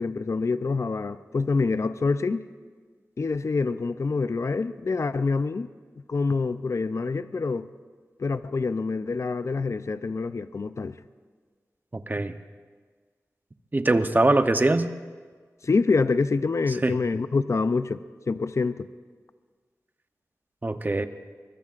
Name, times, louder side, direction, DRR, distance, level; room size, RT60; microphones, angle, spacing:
voice 1, 0.0-2.5 3.2-5.7 6.1-7.7 8.2-11.0 15.6-18.9, left 4 dB, 55° left, 13 dB, 0.5 m, -26 dB
voice 2, 11.9-12.4 13.7-14.9 16.8-17.0 20.6-21.1, right 2 dB, 30° right, 9 dB, 0.8 m, -22 dB
23.0 x 21.5 x 2.5 m, 1.5 s
wide cardioid pair, 75°, 6 cm